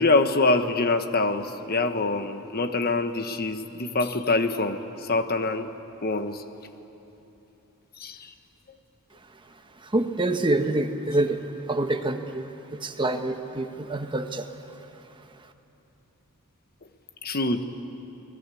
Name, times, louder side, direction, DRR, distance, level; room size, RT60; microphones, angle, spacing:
voice 1, 0.0-5.7 6.0-6.4 8.0-8.3 17.2-17.6, left 3 dB, 45° left, 8 dB, 1.3 m, -25 dB
voice 2, 9.8-14.5, right 2 dB, 20° right, 6 dB, 1.2 m, -27 dB
29.0 x 20.5 x 8.4 m, 3.0 s
head